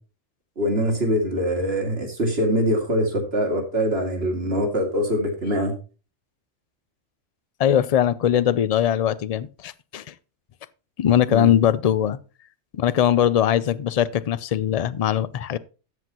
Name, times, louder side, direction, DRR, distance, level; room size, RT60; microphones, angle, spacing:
voice 1, 0.6-5.7 11.3-11.5, equal, 55° right, 2.5 m, -23 dB
voice 2, 7.6-10.1 11.0-12.2 12.7-15.6, left 10 dB, 65° left, 0.3 m, -21 dB
13.5 x 7.9 x 2.9 m
omnidirectional pair, 1.3 m